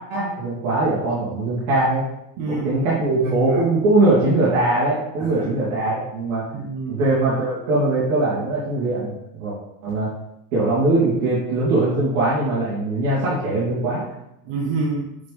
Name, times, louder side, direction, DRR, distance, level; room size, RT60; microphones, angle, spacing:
voice 1, 0.1-2.0 2.5-6.4 6.9-9.6 9.8-10.1 10.5-14.1, right 2 dB, 90° right, -9 dB, 2.8 m, -21 dB
voice 2, 2.4-2.8 3.5-3.6 5.2-5.5 6.5-7.0 14.4-15.2, right 3 dB, 60° right, 0 dB, 1.4 m, -27 dB
9.1 x 4.3 x 3.4 m, 0.84 s
supercardioid pair, 125°, 42 cm